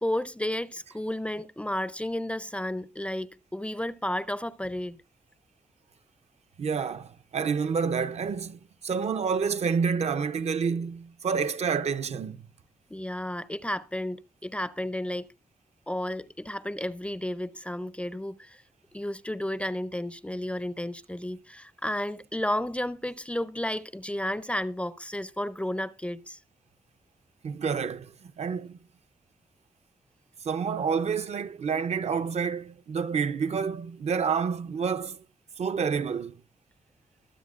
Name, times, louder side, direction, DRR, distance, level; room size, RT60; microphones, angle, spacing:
voice 1, 0.0-5.0 12.9-15.3 15.9-18.6 18.9-26.4, left 1 dB, 10° left, 0.4 m, -32 dB
voice 2, 6.6-12.4 27.4-28.1 28.4-28.8 30.4-35.2 35.6-36.4, right 6 dB, 50° right, 0.5 m, -28 dB
22.5 x 8.0 x 2.4 m
wide cardioid pair, 170°, 14 cm